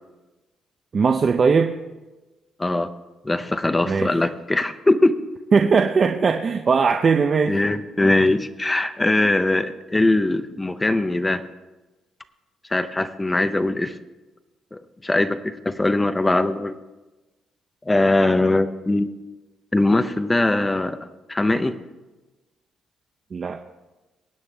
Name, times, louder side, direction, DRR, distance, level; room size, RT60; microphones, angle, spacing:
voice 1, 0.9-1.7 3.9-4.1 5.5-7.6 8.0-8.1 23.3-23.6, right 5 dB, 30° right, 5 dB, 0.6 m, -19 dB
voice 2, 3.2-5.1 7.5-11.4 12.7-14.0 14.7-16.7 17.8-19.1 19.7-21.0 21.3-21.7, left 2 dB, 10° left, 10 dB, 0.6 m, -21 dB
23.5 x 9.1 x 3.4 m, 1.1 s
cardioid pair, 155°, 0 cm